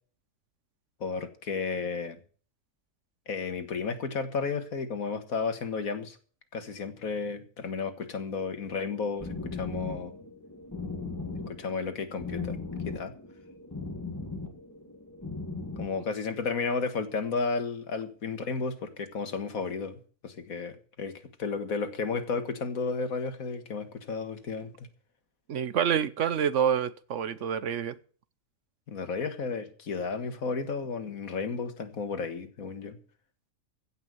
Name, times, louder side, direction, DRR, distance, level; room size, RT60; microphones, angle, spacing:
voice 1, 1.0-2.2 3.3-6.2 6.5-10.2 11.5-12.6 12.9-13.1 15.8-24.9 28.9-33.0, left 4 dB, 85° left, 2.0 m, -33 dB
sound 1, 8.7-15.9, left 4 dB, 10° left, 2.3 m, -38 dB
voice 2, 25.5-28.0, right 8 dB, 65° right, 1.1 m, -27 dB
16.0 x 5.8 x 9.3 m
omnidirectional pair, 1.4 m